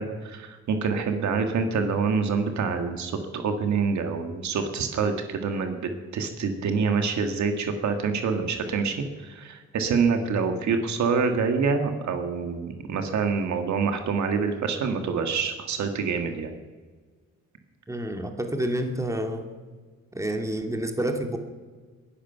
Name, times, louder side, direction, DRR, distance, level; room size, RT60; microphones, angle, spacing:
voice 1, 0.0-16.5, right 5 dB, 70° right, 6 dB, 2.0 m, -26 dB
voice 2, 17.9-19.5 20.2-21.4, right 1 dB, 10° right, 4 dB, 2.3 m, -28 dB
21.5 x 11.5 x 5.8 m, 1.5 s
cardioid pair, 90°, 30 cm